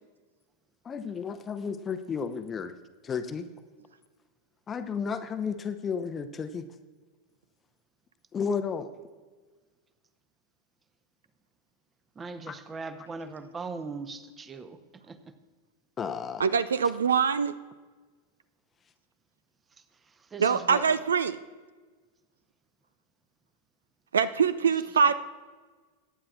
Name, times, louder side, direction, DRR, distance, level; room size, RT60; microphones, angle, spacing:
voice 1, 0.8-2.7 3.0-3.5 4.7-6.6 8.3-8.9 12.5-12.6 16.0-16.4, left 6 dB, 20° left, 9 dB, 0.7 m, -32 dB
voice 2, 12.1-14.8 15.0-15.3 20.1-21.1 24.6-25.1, right 4 dB, 15° right, 11 dB, 0.9 m, -40 dB
voice 3, 16.4-17.5 20.4-21.4 24.1-25.1, right 6 dB, 70° right, 15 dB, 0.4 m, -24 dB
22.5 x 9.9 x 2.4 m, 1.4 s
figure-of-eight pair, 90°, 0 cm